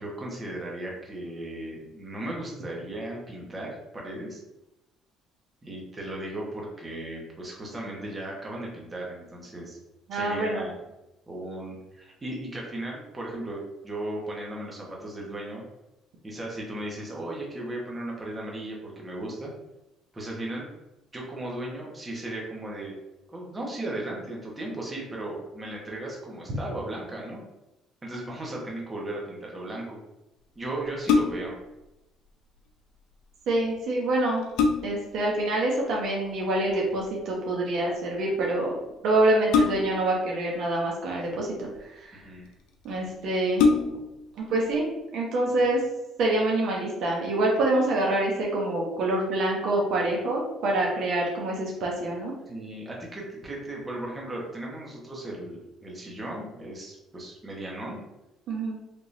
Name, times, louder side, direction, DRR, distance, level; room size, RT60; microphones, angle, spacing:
voice 1, 0.0-4.4 5.6-9.8 10.1-10.7 11.3-15.6 16.2-19.5 20.1-20.7 21.1-23.0 23.3-27.4 28.0-30.0 30.5-31.5 42.1-42.5 45.5-45.6 52.5-58.0, right 1 dB, 25° right, -2 dB, 1.1 m, -36 dB
voice 2, 10.1-10.6 33.5-34.4 34.8-38.7 39.0-41.7 42.0-42.2 42.8-43.6 44.5-45.8 46.2-52.3 58.5-58.8, right 2 dB, 65° right, -2 dB, 0.9 m, -26 dB
sound 1, 30.8-31.6 33.6-33.7 34.2-35.1 36.7-37.1 39.5-40.1 41.1-41.8 42.5-42.6 42.9-43.0 43.5-44.2 44.7-44.8, left 4 dB, 85° left, 0.4 m, -24 dB
3.6 x 2.9 x 2.6 m, 0.95 s
cardioid pair, 90°, 0 cm